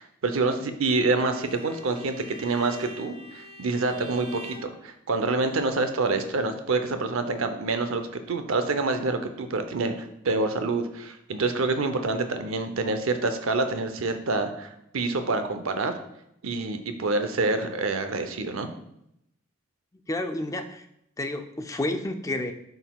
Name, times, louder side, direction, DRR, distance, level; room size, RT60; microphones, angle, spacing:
voice 1, 0.0-15.9 16.4-18.7, right 3 dB, 80° right, 8 dB, 0.7 m, -27 dB
Bowed string instrument, 1.0-4.7, left 1 dB, 30° right, 1.2 m, -44 dB
voice 2, 20.1-20.9 21.2-22.5, left 1 dB, 15° left, 6 dB, 0.4 m, -30 dB
11.0 x 4.0 x 2.3 m, 0.78 s
head